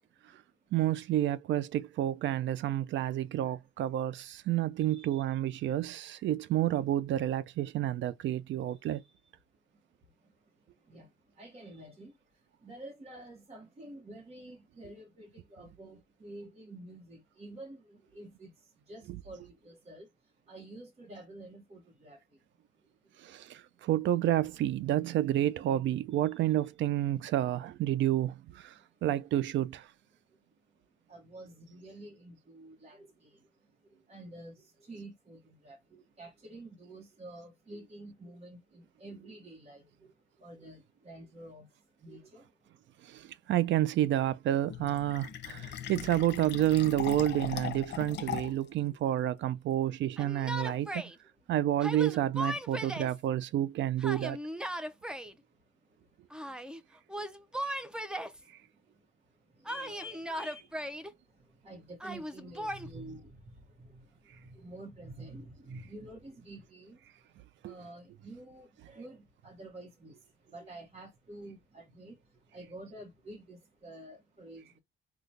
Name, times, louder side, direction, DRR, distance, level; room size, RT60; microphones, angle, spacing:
voice 1, 0.7-9.0 19.1-19.2 23.2-29.9 43.0-51.1 51.5-54.4 67.6-67.7, right 12 dB, 70° right, 0.4 m, -30 dB
voice 2, 4.8-5.2 8.8-9.0 10.9-11.1 11.4-12.1 12.6-18.5 18.9-20.1 20.5-22.2 31.1-33.3 34.1-39.8 40.4-41.7 42.0-42.4 57.1-57.2 59.6-60.7 61.6-64.0 64.4-67.0 67.6-70.2 70.5-72.2 72.5-74.8, right 1 dB, 30° right, 1.0 m, -49 dB
Fill (with liquid), 44.7-48.7, left 9 dB, 60° left, 0.7 m, -39 dB
Yell, 50.2-51.1 51.8-53.2 54.0-55.3 56.3-56.8 57.1-58.4 59.7-61.1 62.0-62.9, equal, 5° right, 0.5 m, -37 dB
3.9 x 2.3 x 3.2 m
cardioid pair, 90°, 20 cm